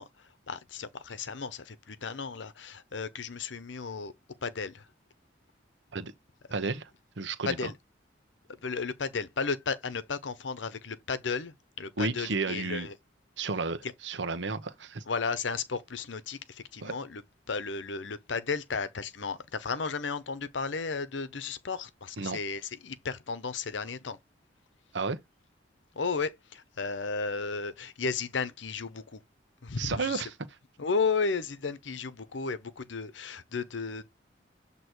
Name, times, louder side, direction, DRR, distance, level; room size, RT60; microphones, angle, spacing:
voice 1, 0.0-4.1 4.4-4.9 7.4-7.7 8.5-13.0 13.8-13.9 15.1-17.2 17.5-24.2 25.9-29.2 29.6-30.2 30.8-34.1, left 4 dB, 80° left, 0.8 m, -34 dB
voice 2, 6.5-6.9 7.2-7.5 12.0-12.9 13.4-15.0 16.8-16.9 22.2-22.4 24.9-25.2 29.8-30.3, right 4 dB, 75° right, 0.9 m, -32 dB
7.9 x 3.0 x 4.4 m
head